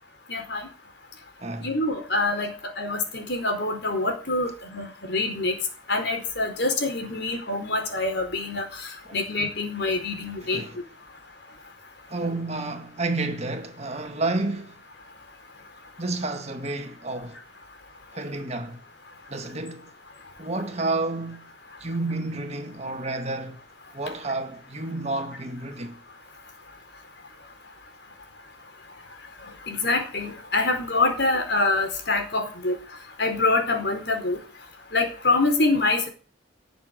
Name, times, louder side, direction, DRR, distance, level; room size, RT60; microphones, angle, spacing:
voice 1, 0.3-0.7 1.6-5.6 5.9-8.6 9.1-10.6 29.7-32.8 33.2-34.4 34.9-36.1, left 2 dB, 60° left, 4.6 m, -25 dB
voice 2, 1.4-1.8 9.1-9.2 10.4-10.8 12.1-14.7 16.0-17.4 18.1-18.8 19.3-19.9 20.4-21.4 21.8-23.6 23.9-26.0, right 2 dB, 35° right, 1.9 m, -30 dB
18.0 x 7.2 x 9.2 m
head